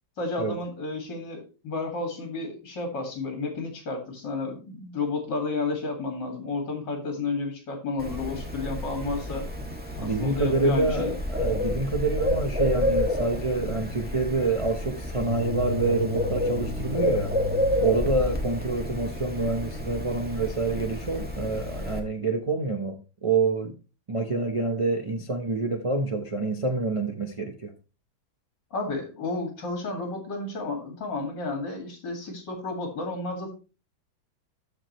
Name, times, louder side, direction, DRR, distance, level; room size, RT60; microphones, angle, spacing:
voice 1, 0.2-9.4 10.0-11.1 28.7-33.5, left 3 dB, 65° left, 2 dB, 2.6 m, -32 dB
Bird, 8.0-22.0, left 1 dB, 5° right, 1.7 m, -30 dB
voice 2, 10.0-17.3 17.8-23.0 23.2-23.8 24.1-27.7, right 3 dB, 60° right, 3 dB, 0.3 m, -27 dB
14.0 x 4.9 x 3.0 m, 0.32 s
omnidirectional pair, 2.1 m